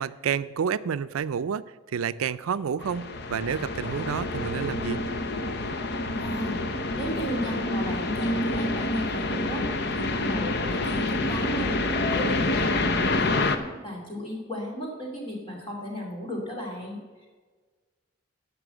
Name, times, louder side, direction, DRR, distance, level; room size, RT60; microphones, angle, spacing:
voice 1, 0.0-1.6 1.9-5.0, right 7 dB, 85° right, 15 dB, 0.4 m, -29 dB
sound 1, 2.8-13.6, left 2 dB, 50° left, 0.7 m, -27 dB
voice 2, 6.1-6.6 7.0-11.8 12.1-17.3, equal, 25° left, -2 dB, 2.5 m, -35 dB
11.0 x 6.0 x 7.9 m, 1.4 s
head